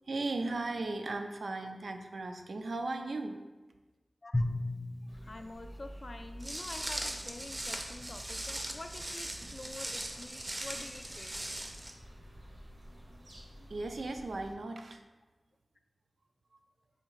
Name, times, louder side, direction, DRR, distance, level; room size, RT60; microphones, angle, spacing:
voice 1, 0.1-3.4 13.7-15.0, right 2 dB, 85° right, 5 dB, 0.4 m, -36 dB
Drum, 4.3-6.7, left 2 dB, 25° left, 0.7 m, -36 dB
sound 1, 5.1-14.6, equal, 65° right, 0.8 m, -50 dB
voice 2, 5.2-11.3, left 2 dB, 50° left, 7 dB, 0.3 m, -47 dB
Walk footsteps, 6.4-11.9, right 1 dB, 35° right, 0.5 m, -40 dB
3.2 x 2.8 x 4.6 m, 1.2 s
wide cardioid pair, 65°, 0 cm